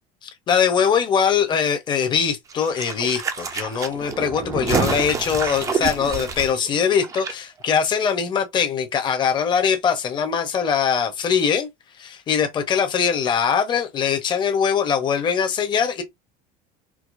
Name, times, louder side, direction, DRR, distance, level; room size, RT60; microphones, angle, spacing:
voice 1, 0.2-11.7 12.0-16.0, left 7 dB, 25° left, 0.7 m, -22 dB
sound 1, 2.5-7.3 7.6-7.7, right 6 dB, 20° right, 0.4 m, -28 dB
4.6 x 2.0 x 2.5 m
cardioid pair, 160°, 18 cm